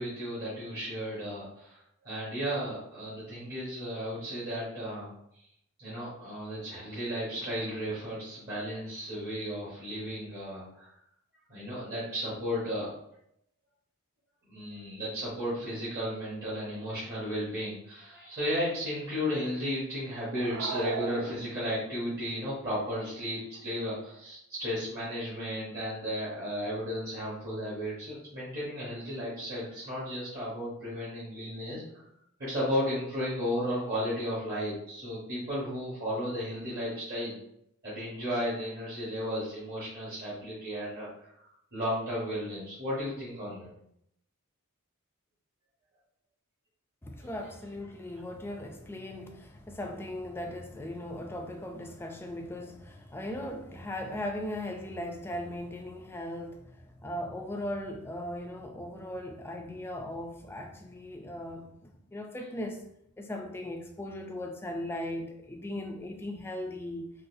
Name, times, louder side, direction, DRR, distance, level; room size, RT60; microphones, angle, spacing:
voice 1, 0.0-1.8 2.0-5.1 5.8-10.9 11.5-12.9 14.5-32.0 32.4-37.3 37.8-43.7 47.2-47.3, equal, 50° right, -9 dB, 1.2 m, -34 dB
sound 1, 20.3-21.9, right 6 dB, 70° right, 0.3 m, -36 dB
voice 2, 47.0-62.8 63.2-67.1, left 1 dB, 10° left, 3 dB, 0.3 m, -38 dB
3.8 x 2.4 x 2.6 m, 0.74 s
head